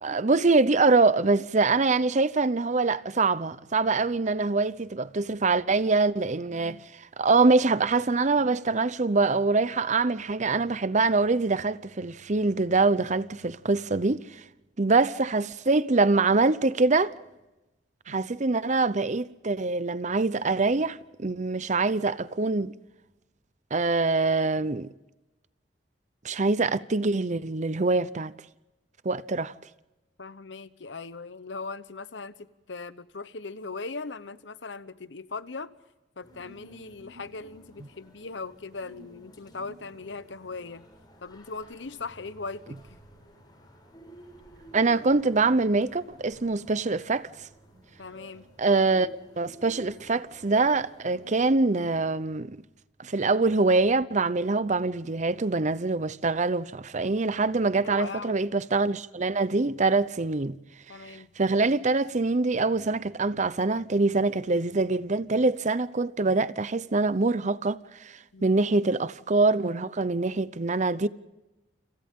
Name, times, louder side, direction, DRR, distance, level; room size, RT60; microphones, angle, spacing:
voice 1, 0.0-14.4 14.8-17.1 18.1-22.7 23.7-24.9 26.2-28.3 29.0-29.5 44.7-47.3 48.6-49.1 49.4-52.6 53.0-60.6 61.1-71.1, right 3 dB, 40° right, 0.7 m, -24 dB
voice 2, 30.2-35.7 36.2-40.8 41.2-43.0 48.0-48.5 57.8-58.4 60.9-61.3 68.3-68.5, left 4 dB, 80° left, 1.0 m, -39 dB
sound 1, 36.2-52.0, right 1 dB, 25° left, 7.4 m, -52 dB
29.5 x 27.0 x 3.7 m
head